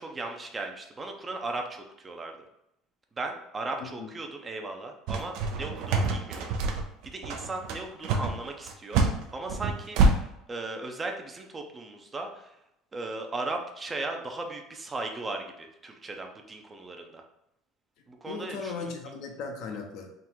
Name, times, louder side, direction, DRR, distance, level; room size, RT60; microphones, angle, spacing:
voice 1, 0.0-2.4 3.2-6.4 7.0-12.6 12.9-17.2 18.1-18.9, right 2 dB, 20° right, 3 dB, 0.6 m, -37 dB
voice 2, 3.8-4.1 18.3-20.1, left 4 dB, 65° left, 3 dB, 0.8 m, -37 dB
sound 1, 5.1-10.1, right 3 dB, 70° right, 0.6 m, -26 dB
3.7 x 2.5 x 4.5 m, 0.82 s
supercardioid pair, 115°, 0 cm